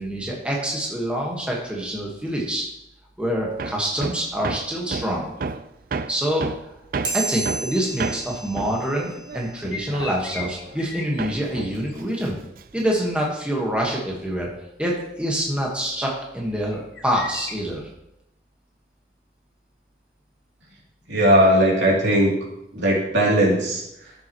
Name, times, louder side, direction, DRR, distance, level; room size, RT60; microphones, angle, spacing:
voice 1, 0.0-2.7 3.2-5.3 6.1-6.7 7.1-12.4 12.7-14.5 14.8-17.9, equal, 5° right, -3 dB, 1.5 m, -26 dB
Hammer, 3.6-10.9 11.2-12.9, right 4 dB, 50° right, 0.4 m, -32 dB
sound 1, 7.0-9.9, right 3 dB, 20° right, 1.6 m, -33 dB
sound 2, 9.5-12.2 16.4-17.5, left 3 dB, 80° left, 1.2 m, -37 dB
voice 2, 21.1-22.4 22.7-24.1, equal, 80° right, -4 dB, 2.9 m, -18 dB
12.5 x 7.2 x 3.1 m, 0.84 s
head